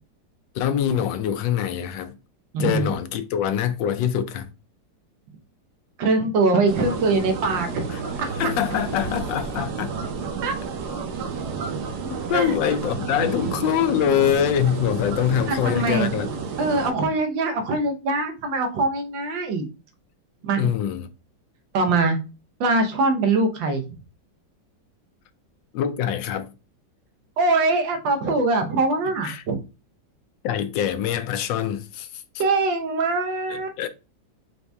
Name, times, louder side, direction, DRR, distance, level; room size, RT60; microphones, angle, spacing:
voice 1, 0.5-2.2 2.6-4.5 7.9-8.0 8.4-9.9 12.0-16.3 20.6-21.1 25.7-26.5 29.2-29.4 30.4-32.2 33.5-33.9, left 9 dB, 90° left, 1.3 m, -24 dB
voice 2, 2.5-2.9 6.0-7.7 8.2-8.3 10.4-10.5 12.3-12.5 13.4-13.5 15.5-16.1 16.6-19.7 20.4-20.7 21.7-22.2 22.6-23.8 27.4-29.5 32.4-33.7, right 3 dB, 85° right, 1.6 m, -22 dB
sound 1, 6.7-16.9, right 5 dB, 65° right, 1.2 m, -31 dB
4.7 x 2.7 x 3.4 m
omnidirectional pair, 2.0 m